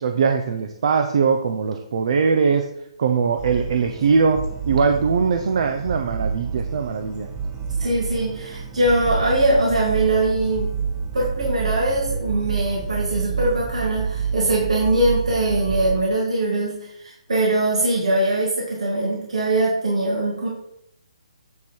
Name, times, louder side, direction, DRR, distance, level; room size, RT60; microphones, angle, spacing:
voice 1, 0.0-2.6 3.0-4.4 4.7-7.3, right 5 dB, 55° right, 5 dB, 0.7 m, -21 dB
sound 1, 3.4-16.0, right 6 dB, 20° right, 0.8 m, -28 dB
voice 2, 7.8-10.7 11.1-20.5, right 1 dB, 75° right, -4 dB, 2.2 m, -22 dB
9.2 x 3.9 x 4.5 m, 0.75 s
hypercardioid pair, 150°, 3 cm